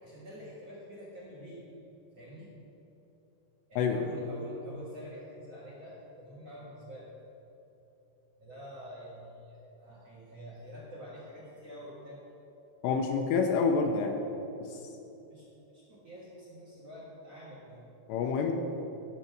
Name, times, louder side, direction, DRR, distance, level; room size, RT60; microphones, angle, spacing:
voice 1, 0.0-1.6 2.1-2.5 3.7-7.1 8.4-12.2 15.3-17.9, equal, 50° right, -6 dB, 2.2 m, -47 dB
voice 2, 12.8-14.2 14.7-14.8 18.1-18.5, left 5 dB, 85° left, 3 dB, 2.8 m, -27 dB
14.5 x 6.8 x 6.1 m, 3.0 s
omnidirectional pair, 5.2 m